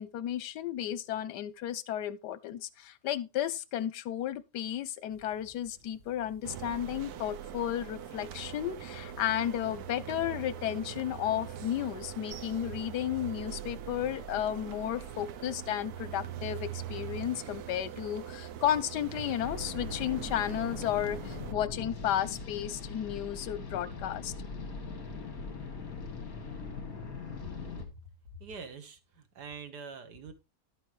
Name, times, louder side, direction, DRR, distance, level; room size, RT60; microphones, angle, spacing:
voice 1, 0.0-24.3, left 11 dB, 85° left, 1.3 m, -33 dB
sound 1, 5.1-19.4, equal, 50° right, 2.9 m, -58 dB
sound 2, 6.4-21.5, right 10 dB, 70° right, 1.2 m, -42 dB
sound 3, 19.4-27.8, left 4 dB, 60° left, 2.6 m, -41 dB
voice 2, 28.4-30.3, right 5 dB, 90° right, 2.0 m, -44 dB
11.5 x 8.2 x 3.2 m
omnidirectional pair, 1.7 m